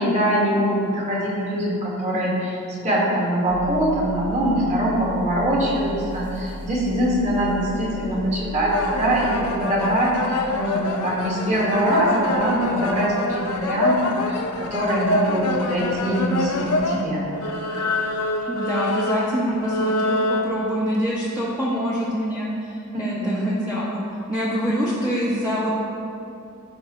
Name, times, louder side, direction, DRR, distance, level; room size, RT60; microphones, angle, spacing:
voice 1, 0.0-2.6 2.8-17.2 22.9-23.6, right 1 dB, 30° right, -5 dB, 1.9 m, -23 dB
sound 1, 3.5-9.7, left 1 dB, 50° right, 1.0 m, -36 dB
sound 2, 8.7-17.0 17.4-20.6, left 2 dB, 85° left, 0.8 m, -26 dB
voice 2, 18.5-24.0 24.3-25.8, equal, 5° right, -9 dB, 1.0 m, -25 dB
14.5 x 5.0 x 3.2 m, 2.7 s
head